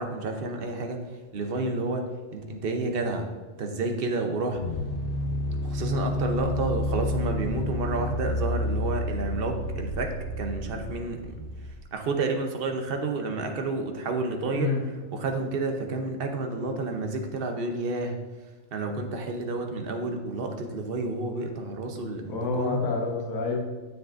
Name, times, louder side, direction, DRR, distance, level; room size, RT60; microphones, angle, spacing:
voice 1, 0.0-3.3 3.6-4.6 5.6-11.5 11.9-14.7 15.1-18.2 18.7-22.8, right 3 dB, 50° right, 4 dB, 0.9 m, -30 dB
sound 1, 4.6-11.8, left 1 dB, 45° left, 0.9 m, -30 dB
voice 2, 22.3-23.6, left 4 dB, 80° left, 0 dB, 1.6 m, -27 dB
9.3 x 7.3 x 2.6 m, 1.3 s
omnidirectional pair, 1.4 m